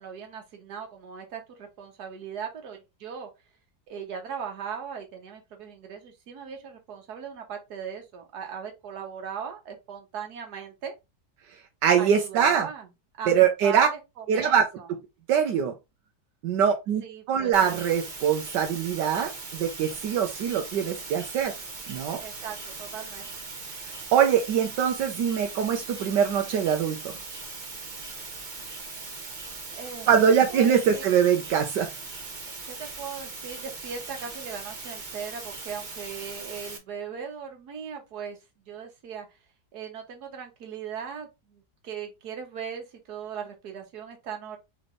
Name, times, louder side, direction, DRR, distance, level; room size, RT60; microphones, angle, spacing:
voice 1, 0.0-3.3 3.9-10.9 12.0-12.9 13.2-14.9 17.0-17.8 22.2-23.5 29.7-30.1 30.5-31.0 32.5-38.4 38.7-39.3 39.7-44.6, right 7 dB, 65° right, 1.7 m, -39 dB
voice 2, 11.8-12.7 13.3-13.9 14.3-14.7 15.3-15.7 16.4-17.0 17.3-21.5 21.9-22.2 24.1-27.2 30.1-31.9, right 8 dB, 85° right, 1.4 m, -23 dB
sound 1, 17.5-36.8, right 3 dB, 35° right, 0.8 m, -40 dB
4.0 x 3.5 x 3.7 m
omnidirectional pair, 1.8 m